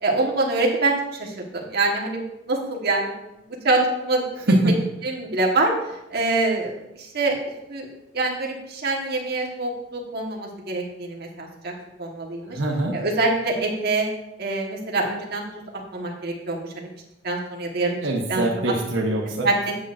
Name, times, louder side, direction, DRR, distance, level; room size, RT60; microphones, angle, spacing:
voice 1, 0.0-2.2 2.5-3.1 3.6-4.6 5.0-5.7 6.1-7.4 7.7-11.7 12.0-12.6 12.9-14.1 14.4-15.4 15.9-16.9 17.2-18.0 18.3-18.7 19.4-19.7, right 2 dB, 55° right, -1 dB, 1.3 m, -25 dB
voice 2, 12.5-13.0 18.0-19.5, right 1 dB, 85° right, -1 dB, 1.0 m, -22 dB
8.3 x 7.3 x 2.5 m, 0.89 s
head